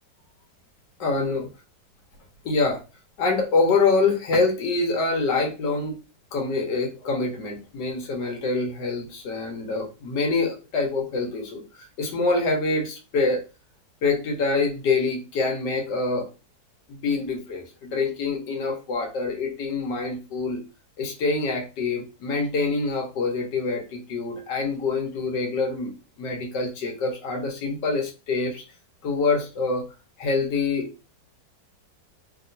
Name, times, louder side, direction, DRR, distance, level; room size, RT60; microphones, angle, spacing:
voice 1, 1.0-1.5 2.4-2.8 3.2-6.0 6.3-11.6 12.0-13.5 14.0-16.3 16.9-20.6 21.0-25.9 26.2-28.6 29.0-29.9 30.2-30.9, left 3 dB, 75° left, 2 dB, 1.5 m, -25 dB
2.9 x 2.8 x 2.6 m, 0.31 s
omnidirectional pair, 1.9 m